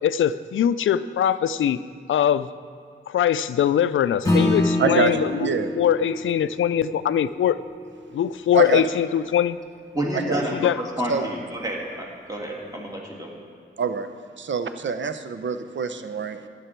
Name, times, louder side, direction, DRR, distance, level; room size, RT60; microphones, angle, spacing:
voice 1, 0.0-1.8 2.1-2.5 3.1-5.5 5.8-7.6 8.1-9.6 10.5-10.8, left 9 dB, 80° left, 15 dB, 0.4 m, -22 dB
Acoustic guitar / Strum, 4.2-9.0, left 1 dB, 15° left, 2.0 m, -27 dB
voice 2, 4.8-5.7 8.5-8.8 10.1-10.4 11.1-11.3 13.8-14.1 14.4-16.5, right 5 dB, 65° right, 10 dB, 0.8 m, -25 dB
voice 3, 9.9-10.5 11.0-13.3, right 1 dB, 20° right, -2 dB, 2.9 m, -29 dB
12.5 x 9.4 x 4.5 m, 2.2 s
cardioid pair, 55°, 20 cm